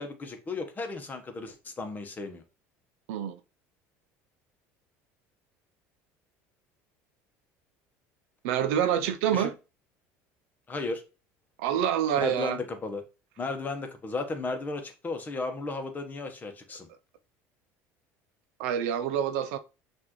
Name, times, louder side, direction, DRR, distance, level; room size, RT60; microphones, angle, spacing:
voice 1, 0.0-2.4 9.3-9.5 10.7-11.0 12.2-13.0 13.4-16.9, left 3 dB, 25° left, 1.0 m, -34 dB
voice 2, 3.1-3.4 8.4-9.5 11.6-12.6 18.6-19.6, right 9 dB, 85° right, 0.5 m, -27 dB
5.9 x 2.6 x 3.0 m
supercardioid pair, 105°, 7 cm